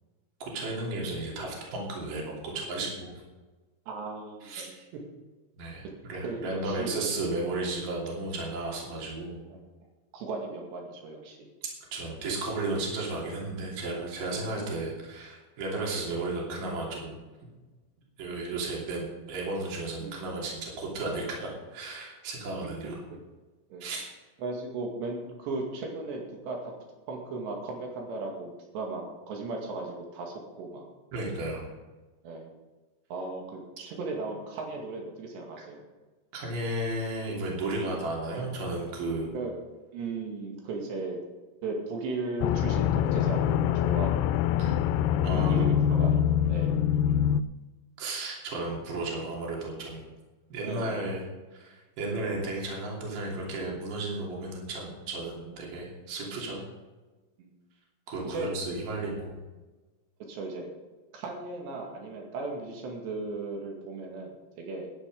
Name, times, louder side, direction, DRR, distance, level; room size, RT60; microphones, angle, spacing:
voice 1, 0.4-3.2 4.4-4.7 5.6-9.4 11.9-17.2 18.2-23.0 23.8-24.1 31.1-31.7 35.6-35.7 36.3-39.3 44.6-44.8 45.2-45.8 48.0-50.0 50.5-51.2 51.5-56.7 58.1-59.4, right 2 dB, 55° right, -3 dB, 4.3 m, -34 dB
voice 2, 3.9-4.8 6.2-6.9 7.5-7.6 9.5-9.6 10.1-11.5 14.5-14.7 15.8-15.9 20.0-20.3 22.8-22.9 23.7-23.8 24.4-26.7 27.1-30.8 32.2-32.5 33.1-35.8 39.3-39.5 39.9-41.2 41.6-44.3 45.3-46.2 46.5-46.8 50.7-51.0 52.0-52.3 57.4-57.5 58.2-58.5 60.3-60.7 61.1-64.9, right 3 dB, 80° right, 1 dB, 4.4 m, -36 dB
sound 1, 42.4-47.4, left 9 dB, 85° left, 2.6 m, -24 dB
12.5 x 10.0 x 5.3 m, 1.2 s
omnidirectional pair, 4.8 m